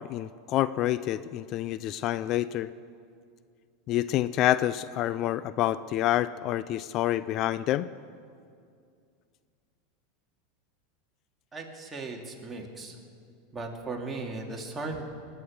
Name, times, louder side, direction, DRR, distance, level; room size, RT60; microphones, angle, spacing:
voice 1, 0.0-2.7 3.9-7.9, left 13 dB, 50° left, 15 dB, 0.4 m, -28 dB
voice 2, 11.5-13.0 13.5-15.0, right 3 dB, 15° right, 0 dB, 2.7 m, -37 dB
21.5 x 9.2 x 6.6 m, 2.3 s
hypercardioid pair, 100°, 0 cm